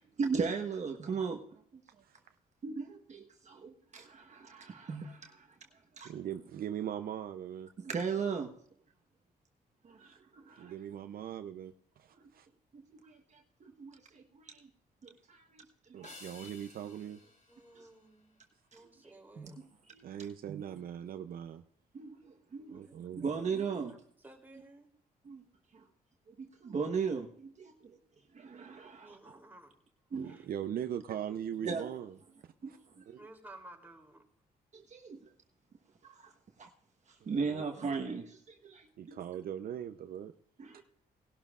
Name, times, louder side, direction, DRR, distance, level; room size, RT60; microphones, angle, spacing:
voice 1, 0.2-1.8 2.6-5.6 6.0-6.1 7.8-8.5 9.8-10.7 12.7-14.7 15.0-16.1 17.8-17.9 19.4-19.5 19.9-20.0 21.9-22.8 23.2-23.9 25.2-25.5 25.7-25.8 26.3-28.0 28.3-29.4 30.1-30.3 31.6-31.9 32.6-33.2 34.7-35.3 36.0-36.3 36.6-36.7 37.1-39.2 40.6-40.8, right 5 dB, 45° right, 1.2 m, -38 dB
voice 2, 2.0-2.4 6.0-7.7 10.0-10.2 10.5-12.5 15.9-17.2 20.0-21.6 22.7-23.3 30.1-32.2 32.4-32.8 33.1-33.2 37.2-37.6 39.0-40.3 40.7-40.8, right 9 dB, 70° right, 0.6 m, -41 dB
sound 1, 16.0-18.7, left 3 dB, 55° left, 6.2 m, -55 dB
voice 3, 17.5-18.4 18.7-19.6 22.6-24.9 28.8-29.7 30.2-30.5 33.2-34.2, right 2 dB, 10° right, 3.1 m, -55 dB
19.0 x 12.0 x 2.4 m
cardioid pair, 105°, 16 cm